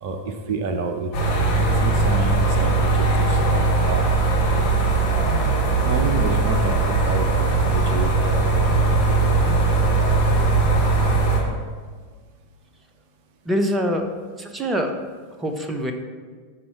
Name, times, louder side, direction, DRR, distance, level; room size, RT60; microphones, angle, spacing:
voice 1, 0.0-4.1 5.8-8.8 9.2-9.3, right 3 dB, 45° right, 5 dB, 0.6 m, -29 dB
sound 1, 1.1-11.4, right 3 dB, 45° left, 2.5 m, -19 dB
voice 2, 13.5-14.1 14.4-14.9 15.4-15.9, equal, 15° right, 5 dB, 0.8 m, -24 dB
8.9 x 4.3 x 5.6 m, 1.5 s
figure-of-eight pair, 90°, 0 cm